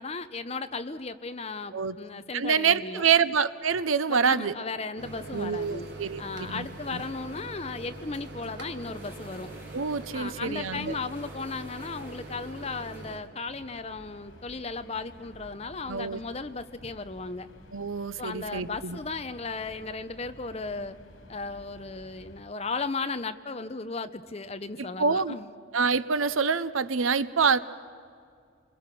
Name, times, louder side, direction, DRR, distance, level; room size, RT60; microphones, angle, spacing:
voice 1, 0.0-3.0 4.1-5.9 6.2-9.5 10.1-17.5 18.2-21.0 21.3-25.5, left 3 dB, 30° left, 11 dB, 0.7 m, -36 dB
voice 2, 2.3-4.5 5.3-7.0 9.7-11.0 15.9-16.2 17.7-19.0 24.8-25.4 25.7-27.6, right 6 dB, 90° right, 14 dB, 0.8 m, -26 dB
sound 1, 5.0-13.2, right 1 dB, 10° right, 4.7 m, -55 dB
Microwave oven, 5.0-13.2, right 2 dB, 55° right, 1.9 m, -43 dB
sound 2, 13.4-22.4, left 1 dB, 75° left, 3.1 m, -51 dB
28.5 x 22.0 x 6.1 m, 2.3 s
head